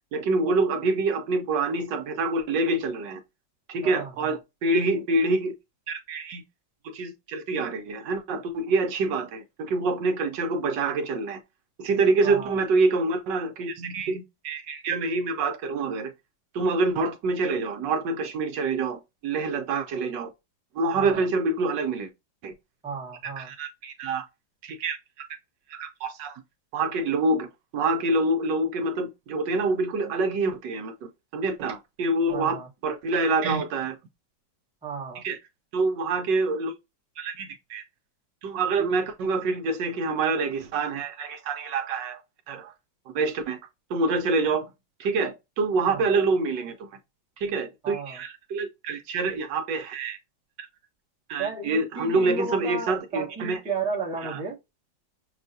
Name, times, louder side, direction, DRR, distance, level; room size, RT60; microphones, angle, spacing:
voice 1, 0.1-3.2 3.7-5.5 5.9-6.4 6.8-11.4 11.8-16.1 16.5-20.3 20.8-22.1 22.4-22.5 23.2-24.2 24.6-25.3 25.7-26.4 26.7-34.0 35.1-35.4 35.7-36.7 37.2-37.8 38.4-42.2 42.5-42.7 43.1-43.6 43.9-44.6 45.0-46.9 47.4-50.2 50.6-50.7 51.3-53.6 54.2-54.4, right 3 dB, 75° right, 1.3 m, -26 dB
voice 2, 3.8-4.4 12.2-12.6 20.9-21.3 22.8-23.5 32.3-32.7 34.8-35.2 38.8-38.9 45.9-46.1 47.8-48.2 51.4-54.6, right 5 dB, 5° right, 0.7 m, -33 dB
6.2 x 2.2 x 2.6 m
omnidirectional pair, 2.0 m